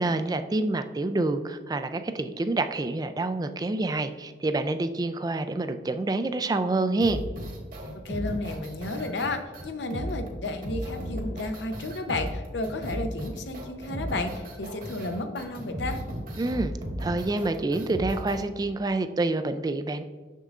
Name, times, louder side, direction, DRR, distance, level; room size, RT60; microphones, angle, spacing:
voice 1, 0.0-7.2 16.4-16.7 17.0-20.0, right 2 dB, 20° right, 9 dB, 0.3 m, -27 dB
sound 1, 7.0-18.4, equal, 50° right, 1.3 m, -35 dB
voice 2, 8.0-16.0, left 2 dB, 80° left, 6 dB, 0.7 m, -32 dB
6.5 x 6.5 x 2.4 m, 1.4 s
head